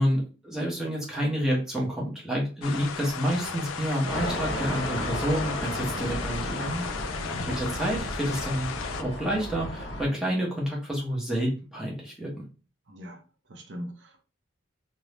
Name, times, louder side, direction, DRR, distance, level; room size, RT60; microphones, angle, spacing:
voice 1, 0.0-6.6 7.5-8.7 9.0-12.3, equal, 5° right, 0.7 m, -29 dB
sound 1, 2.6-9.0, left 6 dB, 85° left, 0.3 m, -36 dB
sound 2, 4.0-10.1, left 1 dB, 65° left, 0.7 m, -34 dB
voice 2, 6.5-7.5 12.9-13.2 13.5-14.2, equal, 60° right, 0.6 m, -39 dB
2.5 x 2.0 x 3.1 m
head